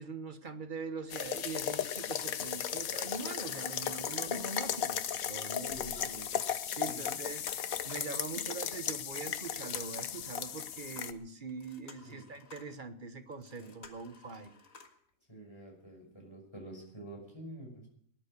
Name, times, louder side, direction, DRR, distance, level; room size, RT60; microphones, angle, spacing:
voice 1, 0.0-6.0 6.4-14.5, right 4 dB, 40° right, 9 dB, 1.3 m, -43 dB
sound 1, 1.1-11.1, left 9 dB, 90° left, 1.3 m, -36 dB
voice 2, 5.7-6.3 6.8-7.2 12.0-12.2 13.6-13.7 15.3-17.9, right 1 dB, 20° left, 0 dB, 5.9 m, -48 dB
sound 2, 6.0-6.9 7.2-8.2 9.1-12.8 13.3-15.1 15.6-15.7 16.1-16.2, left 4 dB, 75° left, 2.1 m, -56 dB
18.5 x 10.5 x 6.7 m, 0.63 s
omnidirectional pair, 1.4 m